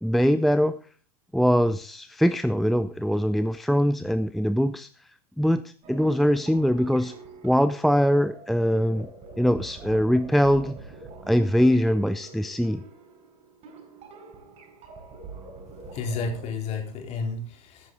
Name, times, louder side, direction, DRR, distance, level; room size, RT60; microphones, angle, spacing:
voice 1, 0.0-0.7 1.3-4.9 5.4-7.1 7.4-9.1 9.4-10.8 11.3-12.8, equal, ahead, 11 dB, 0.5 m, -22 dB
sound 1, 5.8-16.5, right 3 dB, 35° right, 6.9 m, -45 dB
voice 2, 15.9-17.9, left 4 dB, 35° left, 3 dB, 3.6 m, -31 dB
14.0 x 11.0 x 3.9 m, 0.39 s
figure-of-eight pair, 90°, 19 cm